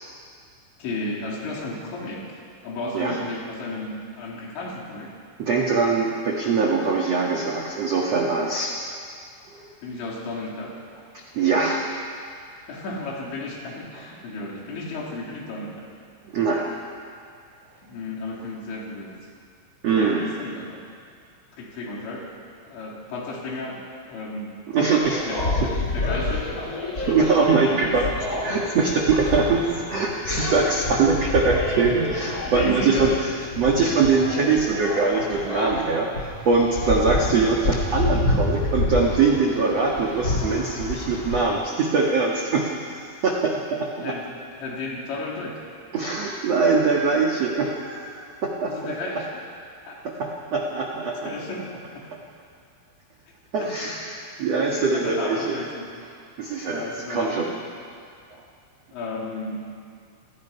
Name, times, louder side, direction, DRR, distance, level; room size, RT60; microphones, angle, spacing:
voice 1, 0.8-2.4 2.6-5.1 9.8-10.8 12.7-15.9 17.8-19.2 20.0-20.8 21.6-24.6 25.3-26.5 27.5-28.0 29.3-29.4 32.5-33.2 37.1-37.5 43.9-45.6 48.7-49.4 49.9-50.0 51.3-52.1 53.6-53.9 54.7-55.9 56.6-57.6 58.9-59.6, left 2 dB, 65° left, -2 dB, 5.2 m, -33 dB
voice 2, 5.4-8.7 9.5-9.6 11.3-11.9 16.2-16.7 19.8-20.3 24.7-25.2 27.1-28.1 28.4-33.1 33.6-44.1 45.9-48.9 50.0-51.3 53.5-55.6 56.4-57.5 58.3-58.4, right 4 dB, 85° right, -1 dB, 1.4 m, -22 dB
sound 1, 25.0-41.4, left 2 dB, 40° left, 1.3 m, -28 dB
28.0 x 18.0 x 5.6 m, 2.2 s
omnidirectional pair, 5.8 m